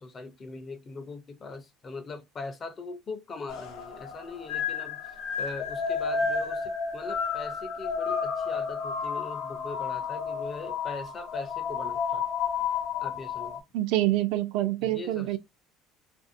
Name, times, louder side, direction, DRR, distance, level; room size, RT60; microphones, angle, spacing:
voice 1, 0.0-12.3 13.0-13.6 14.8-15.4, left 3 dB, 25° left, 0.5 m, -41 dB
sound 1, 3.5-13.6, left 6 dB, 75° left, 0.7 m, -31 dB
voice 2, 13.7-15.4, right 15 dB, 75° right, 0.4 m, -26 dB
2.5 x 2.0 x 2.5 m
cardioid pair, 160°, 0 cm